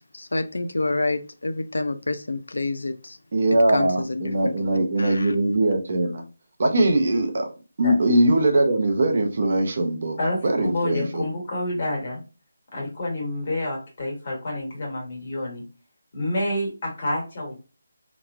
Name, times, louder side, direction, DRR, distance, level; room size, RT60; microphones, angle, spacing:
voice 1, 0.1-3.2 3.7-4.5 5.0-5.3, left 2 dB, 90° left, 0.4 m, -28 dB
voice 2, 3.3-6.2 6.6-7.5 7.8-11.2, right 1 dB, 45° right, 0.6 m, -21 dB
voice 3, 10.2-12.2 12.7-15.6 16.1-17.5, left 1 dB, 35° left, 1.5 m, -28 dB
2.9 x 2.2 x 2.4 m
figure-of-eight pair, 170°, 0 cm